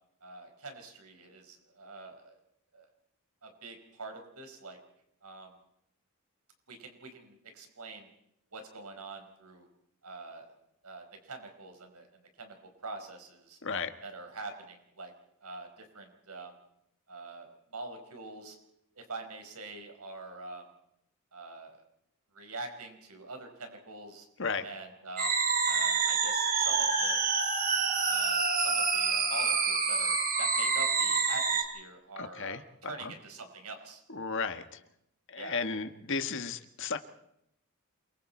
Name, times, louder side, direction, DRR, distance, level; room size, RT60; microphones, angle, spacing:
voice 1, 0.2-2.4 2.7-2.9 3.4-4.8 5.2-5.5 6.7-8.1 8.5-9.7 10.0-10.5 10.8-12.1 12.4-12.5 12.8-13.6 14.0-15.1 15.4-16.6 17.1-18.6 19.0-20.7 21.3-21.8 22.3-24.3 24.6-25.4 25.6-27.2 28.1-34.0 35.3-35.7, right 3 dB, 85° right, 5 dB, 4.9 m, -45 dB
sound 1, 25.2-31.6, right 5 dB, 40° right, 3.7 m, -27 dB
voice 2, 32.2-33.1 34.1-34.8 35.3-37.0, left 4 dB, 55° left, 8 dB, 1.5 m, -34 dB
28.5 x 23.5 x 4.4 m, 0.79 s
head